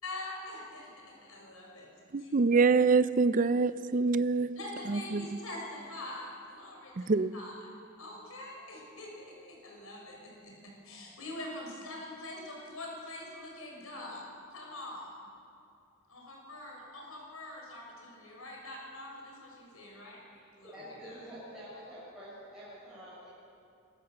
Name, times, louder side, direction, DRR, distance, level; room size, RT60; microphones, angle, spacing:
voice 1, 0.0-1.9 2.2-2.3 4.5-7.7 8.0-15.2 16.1-20.2 20.6-21.3, left 1 dB, 85° left, -1 dB, 6.6 m, -44 dB
voice 2, 2.1-4.5 4.9-5.2 7.0-7.3, right 4 dB, 40° right, 14 dB, 0.4 m, -25 dB
voice 3, 20.3-23.3, equal, ahead, -12 dB, 7.2 m, -48 dB
25.0 x 14.0 x 7.8 m, 2.5 s
head